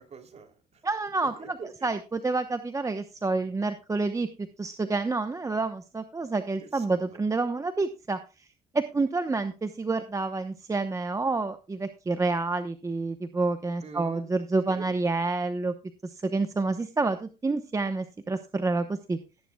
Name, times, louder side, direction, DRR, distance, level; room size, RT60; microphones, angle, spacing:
voice 1, 0.0-0.8 1.3-1.9 6.6-7.4 13.8-14.3 14.7-14.9, right 5 dB, 40° right, 5 dB, 3.1 m, -45 dB
voice 2, 0.8-1.3 1.8-8.5 8.7-15.7 16.0-19.2, right 3 dB, 20° right, 8 dB, 0.9 m, -28 dB
17.5 x 10.0 x 2.3 m, 0.30 s
cardioid pair, 110°, 17 cm